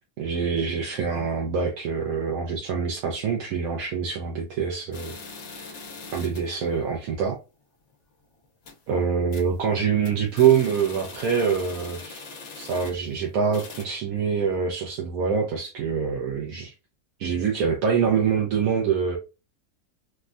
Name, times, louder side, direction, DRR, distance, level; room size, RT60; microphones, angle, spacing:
voice 1, 0.2-5.1 5.5-5.8 6.1-7.4 8.9-12.3 12.6-16.7 17.2-19.2, right 6 dB, 85° right, 1.1 m, -25 dB
sound 1, 4.9-6.6 6.9-7.0 7.4-7.5 7.9-8.1 8.4-8.9 9.3-9.6 9.9-13.2 13.5-13.9, left 4 dB, 80° left, 1.2 m, -42 dB
3.4 x 2.1 x 2.4 m
omnidirectional pair, 1.4 m